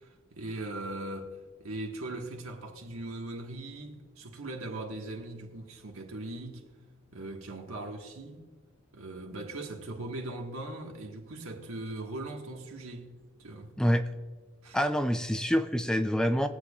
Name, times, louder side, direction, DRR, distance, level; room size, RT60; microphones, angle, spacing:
voice 1, 0.0-6.7 7.1-8.4 8.9-13.1 13.4-13.7 14.6-14.8, right 2 dB, 80° right, 1.5 m, -40 dB
voice 2, 14.7-16.5, equal, 5° left, 0.3 m, -26 dB
21.5 x 8.3 x 2.4 m
head